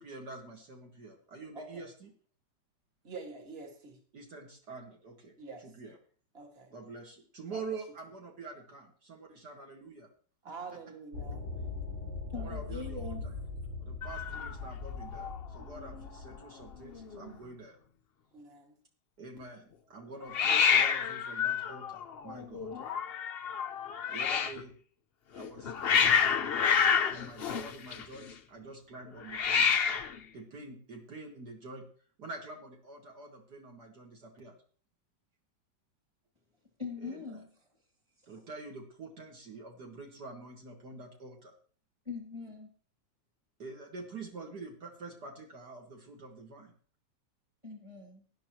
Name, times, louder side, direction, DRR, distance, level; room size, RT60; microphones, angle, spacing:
voice 1, 0.0-2.1 4.1-6.0 6.7-10.1 12.4-13.3 13.8-17.8 19.2-22.7 24.1-24.7 25.3-25.7 26.3-29.7 30.3-31.9 32.2-34.6 37.0-37.4 38.3-41.5 43.6-46.7, right 3 dB, 60° right, 2.3 m, -46 dB
voice 2, 1.5-1.8 3.0-4.0 5.4-5.7 6.3-6.7 7.5-7.6 10.4-11.5 18.3-18.8, right 4 dB, 35° right, 2.3 m, -46 dB
sound 1, 11.1-16.3, left 4 dB, 80° right, 5.1 m, -40 dB
voice 3, 12.3-13.5 36.8-37.5 38.2-38.3 42.0-42.7 47.6-48.2, left 4 dB, 15° right, 2.7 m, -42 dB
Hiss, 14.0-15.4 15.6-16.1 16.3-16.4 16.6-17.3 20.3-24.6 25.4-28.3 29.2-30.2, left 7 dB, 75° left, 0.5 m, -29 dB
18.0 x 10.5 x 3.1 m
omnidirectional pair, 2.0 m